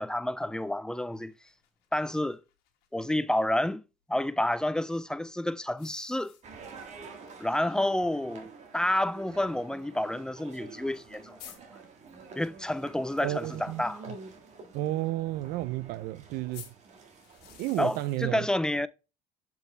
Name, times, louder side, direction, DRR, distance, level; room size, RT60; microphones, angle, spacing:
voice 1, 0.0-1.3 1.9-2.4 2.9-3.8 4.1-6.4 7.4-11.4 12.4-14.0 17.8-18.9, left 1 dB, 5° left, 0.3 m, -29 dB
sound 1, 1.1-3.2 5.7-6.9 7.3-7.4 7.7-7.8 8.7-8.8 10.6-10.7 10.9-11.0 11.4-11.6 16.5-18.3, left 10 dB, 75° left, 1.5 m, -52 dB
sound 2, 6.4-17.7, right 4 dB, 45° right, 1.6 m, -48 dB
voice 2, 13.2-13.8 14.7-16.7 17.6-18.5, right 16 dB, 70° right, 0.4 m, -32 dB
6.8 x 4.6 x 3.2 m
cardioid pair, 105°, 16 cm